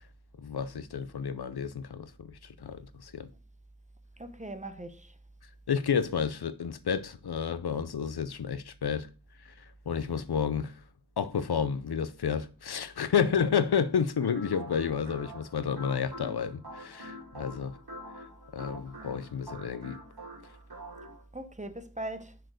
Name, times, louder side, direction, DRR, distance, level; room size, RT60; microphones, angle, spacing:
voice 1, 0.4-3.3 5.7-9.1 9.9-10.7 11.2-17.8 18.5-20.0, left 7 dB, 90° left, 0.6 m, -30 dB
voice 2, 4.2-5.1 13.2-13.4 21.3-22.3, right 1 dB, 20° right, 0.9 m, -40 dB
sound 1, 14.2-21.2, equal, 80° right, 2.2 m, -45 dB
6.4 x 4.5 x 6.3 m
wide cardioid pair, 55°, 38 cm